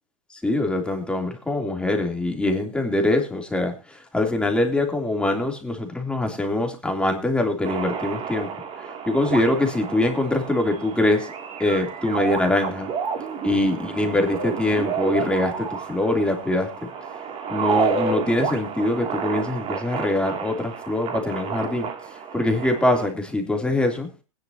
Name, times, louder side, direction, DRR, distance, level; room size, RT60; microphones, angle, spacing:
voice 1, 0.4-3.7 4.1-8.5 9.1-11.3 11.6-12.9 13.4-16.7 17.5-21.9 22.3-24.1, left 1 dB, 5° left, 3 dB, 3.2 m, -23 dB
sound 1, 7.6-23.1, right 6 dB, 35° right, 2.7 m, -30 dB
20.5 x 10.5 x 2.9 m, 0.28 s
hypercardioid pair, 110°, 17 cm